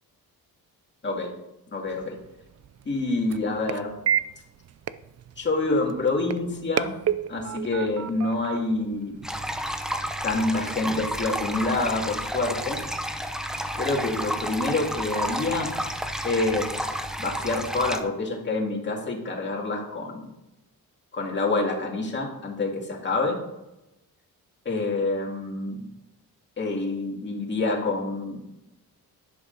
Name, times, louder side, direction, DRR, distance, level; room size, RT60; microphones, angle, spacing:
voice 1, 1.7-2.2 2.9-3.9 5.4-6.9 7.3-9.2 10.2-12.8 13.7-15.7 16.2-16.9 17.2-20.3 21.1-23.4 24.7-25.8 26.6-28.4, left 2 dB, 30° left, 0 dB, 2.2 m, -27 dB
sound 1, 1.9-9.8, right 9 dB, 45° right, 0.5 m, -33 dB
sound 2, 9.2-18.0, equal, ahead, 0.7 m, -31 dB
11.0 x 11.0 x 4.0 m, 0.93 s
wide cardioid pair, 170°, 36 cm